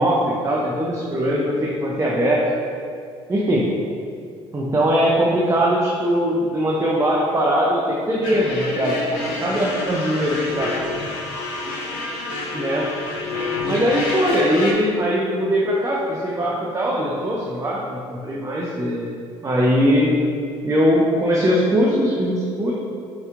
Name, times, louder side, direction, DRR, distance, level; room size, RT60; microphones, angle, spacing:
voice 1, 0.0-2.4 3.3-3.6 4.5-10.7 12.5-12.9 13.6-19.1 19.4-20.1 20.6-22.7, equal, 20° right, -4 dB, 0.6 m, -21 dB
sound 1, 8.2-14.7, left 2 dB, 70° left, 0.6 m, -28 dB
5.4 x 2.3 x 2.9 m, 2.4 s
hypercardioid pair, 55°, 15 cm